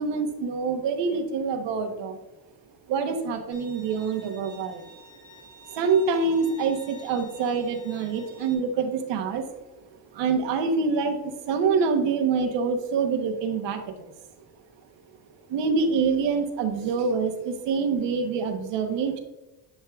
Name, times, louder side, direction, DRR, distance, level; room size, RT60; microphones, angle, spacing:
voice 1, 0.0-2.2 2.9-4.8 5.1-5.2 5.7-9.5 10.1-14.1 15.5-19.2, right 5 dB, 90° right, 5 dB, 1.1 m, -26 dB
Bowed string instrument, 3.5-8.5, left 1 dB, 30° left, 1.7 m, -50 dB
10.0 x 4.6 x 2.4 m, 0.99 s
cardioid pair, 125°, 42 cm